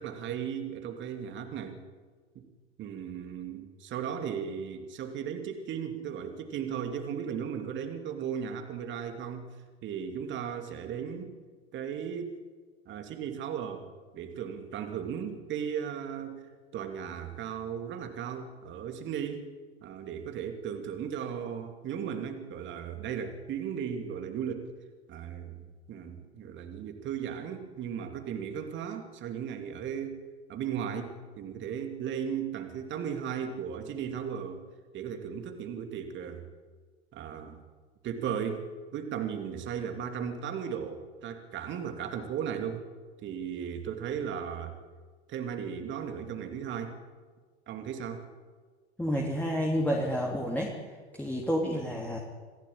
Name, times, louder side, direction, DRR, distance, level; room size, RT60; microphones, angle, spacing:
voice 1, 0.0-1.8 2.3-2.5 2.8-9.5 9.8-11.3 11.7-12.4 12.9-13.8 14.1-19.5 19.8-24.7 25.1-30.2 30.5-34.6 34.9-36.5 37.1-37.6 38.0-42.8 43.2-44.8 45.3-46.9 47.7-48.2, right 8 dB, 35° right, 5 dB, 2.8 m, -36 dB
voice 2, 49.0-50.7 51.2-52.2, equal, 5° left, -2 dB, 3.3 m, -29 dB
27.0 x 16.5 x 8.8 m, 1.5 s
figure-of-eight pair, 90°, 33 cm